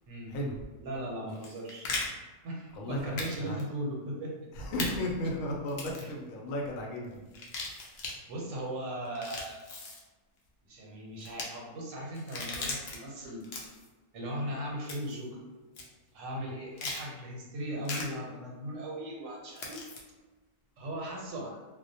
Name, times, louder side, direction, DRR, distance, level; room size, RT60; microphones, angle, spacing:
voice 1, 0.1-0.4 0.8-1.9 2.4-4.4 6.0-6.1 8.3-9.6 10.6-13.4 14.1-15.4 16.1-19.8 20.8-21.6, right 1 dB, 80° right, -2 dB, 1.0 m, -38 dB
sound 1, 1.3-2.1 3.2-3.3 3.6-3.7 4.8-4.9 5.7-6.1 7.3-8.1 9.1-10.0 11.2-11.5 12.2-13.0 13.4-13.9 14.9-15.2 15.8-15.9 16.8-17.0 17.9-18.0 19.6-20.0, left 3 dB, 65° left, 0.7 m, -37 dB
voice 2, 2.7-3.6 4.6-7.2 13.2-13.3 16.3-16.5, left 1 dB, 85° left, -1 dB, 1.0 m, -35 dB
2.3 x 2.1 x 2.6 m, 1.2 s
omnidirectional pair, 1.4 m